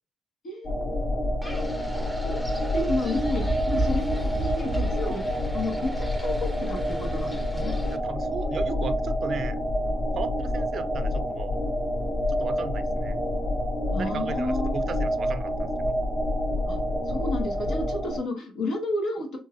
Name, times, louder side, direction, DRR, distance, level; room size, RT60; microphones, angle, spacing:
sound 1, 0.6-18.2, left 1 dB, 50° left, 2.0 m, -28 dB
Wind, 1.4-8.0, right 1 dB, 5° left, 0.7 m, -34 dB
voice 1, 2.7-7.7 13.9-14.8 16.7-16.8 17.1-19.4, left 2 dB, 70° left, 1.5 m, -31 dB
voice 2, 7.9-9.6 10.2-11.6 12.3-13.2 14.0-16.0, right 6 dB, 55° right, 0.4 m, -36 dB
3.8 x 2.7 x 2.6 m
cardioid pair, 90°, 0 cm